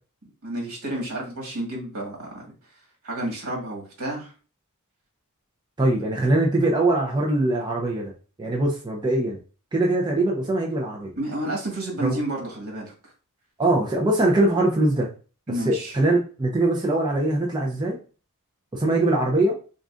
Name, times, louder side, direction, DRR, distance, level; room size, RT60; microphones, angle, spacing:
voice 1, 0.4-2.4 3.0-4.3 11.2-12.9 15.5-16.0, right 1 dB, 70° right, -1 dB, 1.7 m, -30 dB
voice 2, 5.8-8.1 8.4-9.4 9.7-11.1 12.0-12.2 13.6-15.1 15.6-18.0 18.7-19.6, right 2 dB, 20° right, -1 dB, 0.6 m, -22 dB
3.8 x 3.7 x 2.5 m, 0.37 s
head